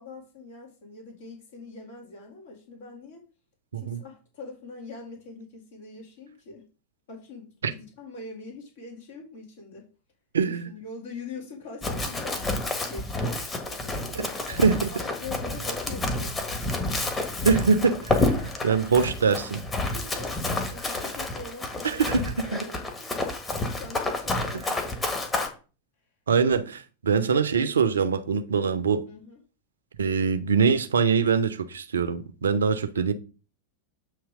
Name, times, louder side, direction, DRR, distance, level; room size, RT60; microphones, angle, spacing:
voice 1, 0.0-3.2 3.7-6.7 7.1-9.9 10.5-14.6 14.9-16.4 18.3-18.6 19.8-23.1 23.6-25.1 29.1-29.4, left 3 dB, 55° left, 2.3 m, -43 dB
voice 2, 10.3-10.7 14.2-14.9 17.4-18.3 18.6-19.6 21.8-22.7 26.3-29.1 30.0-33.1, right 5 dB, 70° right, 0.7 m, -23 dB
Run, 11.8-25.5, left 2 dB, 15° left, 1.5 m, -29 dB
8.3 x 3.1 x 4.9 m
figure-of-eight pair, 90°, 0 cm